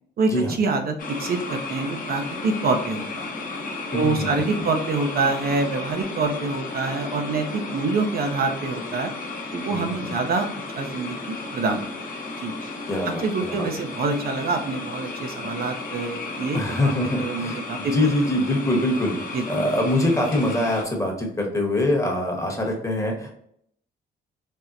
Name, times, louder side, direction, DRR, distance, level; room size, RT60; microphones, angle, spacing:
voice 1, 0.2-3.3 3.9-9.1 9.5-10.5 10.8-11.8 12.4-12.5 13.2-16.9 17.2-17.9 19.3-19.6, right 3 dB, 50° right, 5 dB, 0.5 m, -26 dB
sound 1, 1.0-20.8, left 3 dB, 45° left, 0.8 m, -34 dB
voice 2, 3.9-4.5 9.7-10.2 12.9-13.7 16.5-23.3, left 1 dB, 15° left, 1 dB, 0.9 m, -24 dB
4.2 x 2.1 x 2.4 m, 0.68 s
cardioid pair, 90°, 20 cm